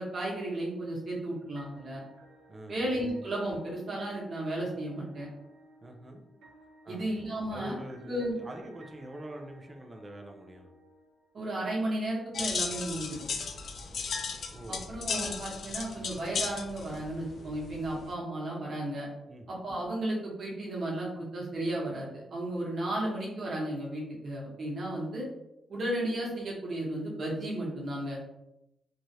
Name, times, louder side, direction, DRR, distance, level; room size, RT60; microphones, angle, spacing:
voice 1, 0.0-2.0 2.7-5.3 6.9-7.7 8.0-8.3 11.3-13.2 14.7-19.1 19.5-25.3 25.7-28.2, right 1 dB, 50° right, -3 dB, 1.0 m, -34 dB
sound 1, 1.6-11.6, right 1 dB, 80° right, 0.6 m, -57 dB
voice 2, 2.5-2.8 5.8-6.2 6.8-7.2 7.5-10.7 14.5-14.9 19.3-19.5, right 1 dB, 20° right, 3 dB, 0.4 m, -45 dB
sound 2, 12.3-18.1, left 5 dB, 55° left, 0.3 m, -35 dB
3.1 x 2.4 x 2.7 m, 0.86 s
wide cardioid pair, 155°, 0 cm